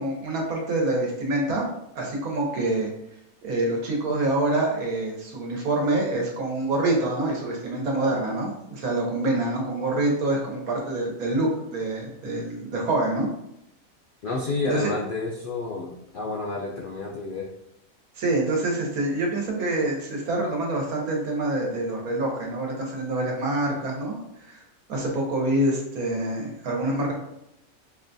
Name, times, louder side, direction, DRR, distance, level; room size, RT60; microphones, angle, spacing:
voice 1, 0.0-1.7 1.9-2.9 3.4-13.3 14.7-14.9 18.1-24.6 24.9-27.1, right 2 dB, 90° right, -1 dB, 1.4 m, -26 dB
voice 2, 14.2-17.5, left 3 dB, 85° left, -2 dB, 0.4 m, -30 dB
5.3 x 2.2 x 2.5 m, 0.81 s
omnidirectional pair, 1.5 m